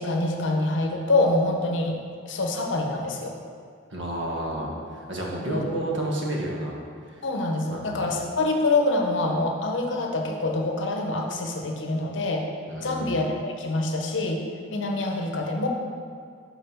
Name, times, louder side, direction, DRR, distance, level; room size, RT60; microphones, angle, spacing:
voice 1, 0.0-2.0 2.3-3.3 5.5-5.6 7.2-12.5 12.8-14.4 14.7-15.7, left 2 dB, 70° left, 2 dB, 0.8 m, -25 dB
voice 2, 3.9-6.7 7.7-7.9 12.7-13.1, right 1 dB, 65° right, -2 dB, 1.2 m, -30 dB
5.8 x 4.6 x 5.6 m, 2.1 s
head